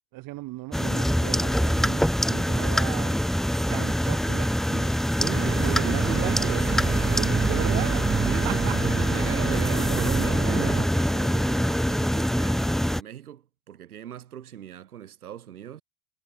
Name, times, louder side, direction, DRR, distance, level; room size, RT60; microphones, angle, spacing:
voice 1, 0.1-3.2 3.7-4.9 5.4-6.6 7.1-8.1 8.4-8.8, right 20 dB, 50° right, 2.8 m, -37 dB
sound 1, 0.7-13.0, equal, ahead, 2.0 m, -24 dB
voice 2, 5.2-6.7 8.3-8.6 9.0-15.8, right 10 dB, 75° right, 7.9 m, -38 dB
sound 2, 5.3-10.9, right 7 dB, 25° right, 2.2 m, -29 dB
figure-of-eight pair, 75°, 45 cm